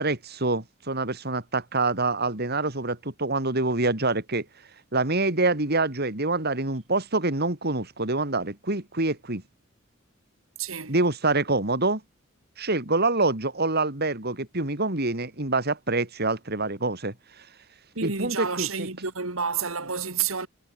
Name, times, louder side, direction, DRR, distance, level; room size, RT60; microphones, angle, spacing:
voice 1, 0.0-4.5 4.9-9.4 10.9-12.0 12.6-17.5 18.0-18.9, right 2 dB, 50° right, 3.7 m, -26 dB
voice 2, 10.6-10.9 17.9-20.5, right 6 dB, 90° right, 3.0 m, -29 dB
head